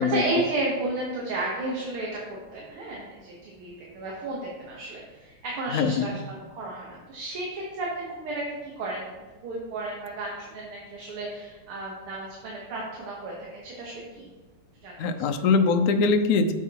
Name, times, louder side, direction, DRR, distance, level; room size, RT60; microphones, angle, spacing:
voice 1, 0.0-9.1 9.4-14.3 14.8-15.1, right 2 dB, 90° right, -3 dB, 2.2 m, -33 dB
voice 2, 5.7-6.0 15.0-16.5, left 4 dB, 80° left, 7 dB, 0.8 m, -22 dB
8.3 x 7.3 x 2.9 m, 1.3 s
omnidirectional pair, 2.3 m